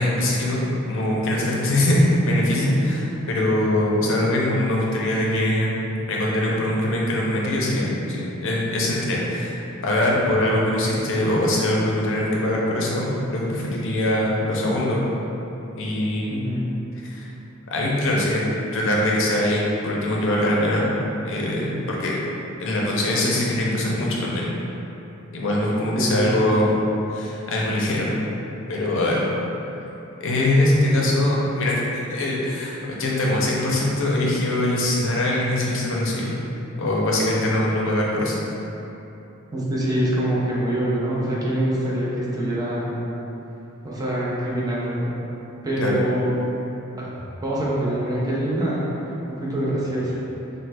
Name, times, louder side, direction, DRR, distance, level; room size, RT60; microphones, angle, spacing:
voice 1, 0.0-5.8 6.1-15.0 15.7-16.4 17.0-17.3 17.7-20.9 21.2-22.2 22.6-24.5 25.3-26.7 27.1-28.1 28.7-29.2 30.2-36.3 36.8-38.4 45.8-46.0, left 1 dB, 65° left, -3 dB, 0.5 m, -22 dB
voice 2, 16.3-16.6 25.9-26.3 39.5-43.0 43.8-45.1 45.6-46.3 46.9-47.1 47.4-48.8 49.4-50.2, right 1 dB, 20° right, -7 dB, 0.5 m, -24 dB
3.1 x 2.1 x 3.3 m, 3.0 s
head